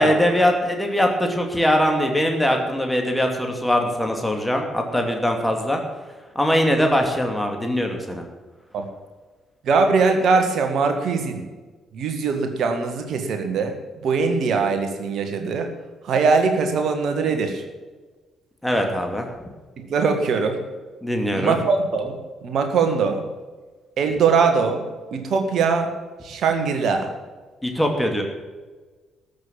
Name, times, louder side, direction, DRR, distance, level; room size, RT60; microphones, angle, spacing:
voice 1, 0.0-5.8 6.3-8.2 18.6-19.3 21.0-21.5 27.6-28.2, equal, 5° left, 2 dB, 2.5 m, -21 dB
voice 2, 9.6-11.4 11.9-13.8 14.0-15.7 16.0-17.6 19.8-20.6 21.3-23.3 24.0-25.9 26.2-27.1, right 5 dB, 55° right, 5 dB, 1.8 m, -21 dB
13.0 x 6.8 x 9.0 m, 1.3 s
figure-of-eight pair, 40°, 0 cm